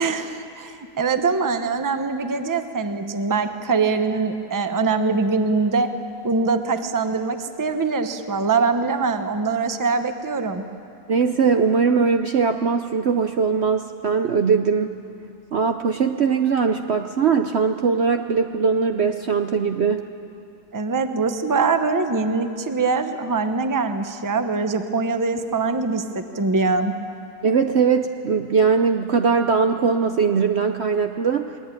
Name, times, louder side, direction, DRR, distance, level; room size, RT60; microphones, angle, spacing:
voice 1, 0.0-5.9 6.2-10.6 20.7-26.9, right 4 dB, 15° right, 8 dB, 0.8 m, -23 dB
voice 2, 11.1-15.0 15.5-20.1 27.4-31.6, right 5 dB, 55° right, 6 dB, 0.8 m, -20 dB
22.0 x 20.0 x 9.1 m, 2.6 s
omnidirectional pair, 1.6 m